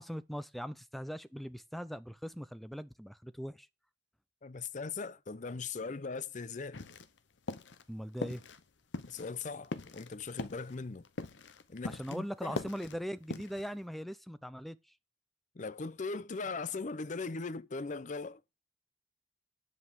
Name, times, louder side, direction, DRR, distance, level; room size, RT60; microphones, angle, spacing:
voice 1, 0.0-3.7 7.9-8.4 11.9-14.8, equal, ahead, 0.5 m, -40 dB
voice 2, 4.4-6.8 9.1-11.1 11.7-12.6 15.5-18.4, left 4 dB, 40° left, 0.6 m, -39 dB
sound 1, 6.7-7.2 7.5-7.8 8.2-8.6 8.9-12.2 12.4-13.7, left 3 dB, 75° left, 0.8 m, -41 dB
9.9 x 5.3 x 7.8 m
head